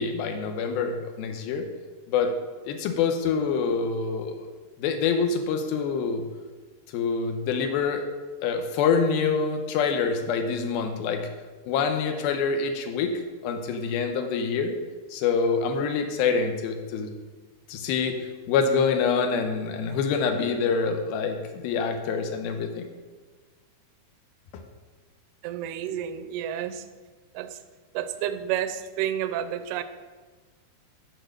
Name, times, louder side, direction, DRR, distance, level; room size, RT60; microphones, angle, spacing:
voice 1, 0.0-1.7 2.1-2.3 2.7-6.2 6.9-8.0 8.4-11.3 11.7-13.1 13.4-14.8 15.1-17.1 17.7-18.2 18.5-22.9, left 5 dB, 80° left, 5 dB, 2.7 m, -26 dB
voice 2, 25.4-26.9 27.3-27.6 27.9-29.8, right 10 dB, 90° right, 11 dB, 2.6 m, -30 dB
10.5 x 4.6 x 6.5 m, 1.3 s
omnidirectional pair, 4.4 m